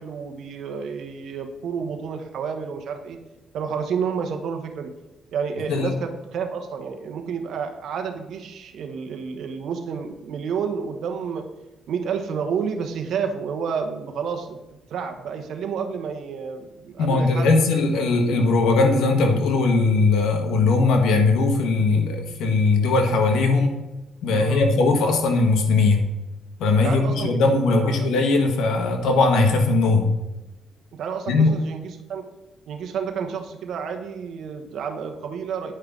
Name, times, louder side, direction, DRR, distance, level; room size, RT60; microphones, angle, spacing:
voice 1, 0.0-3.2 3.5-4.9 5.3-11.5 11.9-14.6 14.9-17.5 24.4-24.7 26.8-27.4 27.7-28.1 30.9-32.2 32.7-35.7, right 6 dB, 70° right, 5 dB, 1.2 m, -30 dB
voice 2, 17.0-23.8 24.2-26.1 26.6-30.1 31.3-31.5, left 3 dB, 85° left, 3 dB, 1.5 m, -19 dB
9.8 x 5.6 x 3.8 m, 1.0 s
cardioid pair, 90°, 0 cm